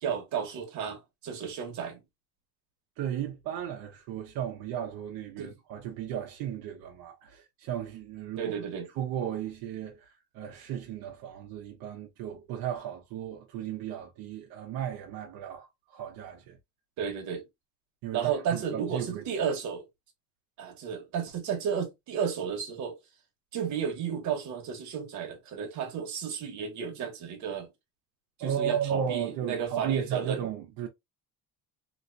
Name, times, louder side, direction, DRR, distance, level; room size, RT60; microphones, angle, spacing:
voice 1, 0.0-2.0 5.4-5.5 8.4-8.9 17.0-17.4 18.1-19.8 20.6-22.9 23.5-27.7 28.4-30.4, right 7 dB, 55° right, 1.3 m, -33 dB
voice 2, 3.0-8.5 8.9-16.6 18.0-19.2 28.4-30.9, right 9 dB, 80° right, 0.9 m, -35 dB
3.0 x 2.9 x 2.6 m
cardioid pair, 175°, 35 cm